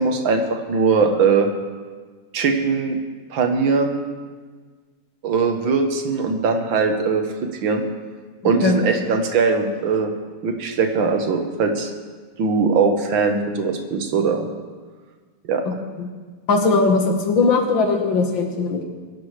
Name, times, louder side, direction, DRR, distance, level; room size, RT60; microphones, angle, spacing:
voice 1, 0.0-1.5 2.3-3.0 3.3-4.0 5.2-7.3 7.6-7.8 8.4-10.1 10.4-11.9 12.4-14.5 15.5-15.6, right 4 dB, 75° right, 5 dB, 1.9 m, -20 dB
voice 2, 15.7-16.1 16.5-18.9, left 3 dB, 75° left, 3 dB, 2.2 m, -19 dB
22.5 x 11.0 x 3.3 m, 1.5 s
omnidirectional pair, 2.1 m